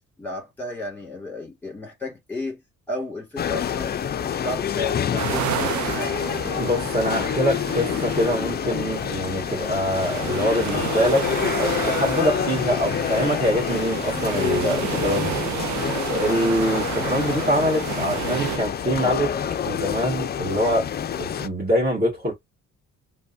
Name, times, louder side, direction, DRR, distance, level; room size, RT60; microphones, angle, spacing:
voice 1, 0.2-2.6 2.9-6.2, left 2 dB, 5° left, 1.9 m, -33 dB
sound 1, 3.4-21.5, left 9 dB, 35° left, 0.4 m, -27 dB
sound 2, 5.2-18.6, right 12 dB, 70° right, 0.5 m, -31 dB
voice 2, 6.5-11.3 11.6-15.4 16.1-19.3 19.6-22.3, equal, 30° right, 1.8 m, -24 dB
5.2 x 2.2 x 2.6 m
cardioid pair, 90°, 30 cm